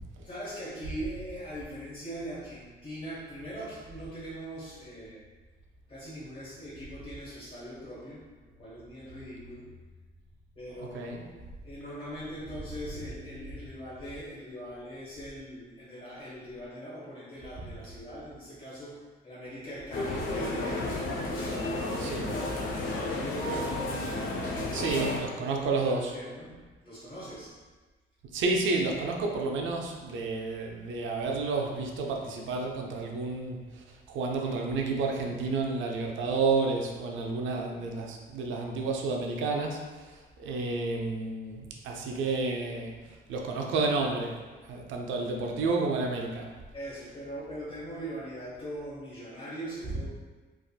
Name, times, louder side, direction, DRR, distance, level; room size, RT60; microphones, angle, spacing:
voice 1, 0.2-5.2 5.9-9.7 10.5-11.3 11.6-18.9 19.2-23.8 24.6-26.6 26.8-27.5 37.1-37.4 46.7-50.1, equal, 35° left, -11 dB, 1.4 m, -41 dB
voice 2, 10.8-11.3 22.0-22.3 24.7-26.1 28.3-44.4 44.7-46.5, right 3 dB, 75° right, 1 dB, 0.5 m, -31 dB
sound 1, 19.9-25.2, left 2 dB, 80° left, 0.6 m, -32 dB
3.4 x 2.4 x 2.2 m, 1.3 s
cardioid pair, 90°, 20 cm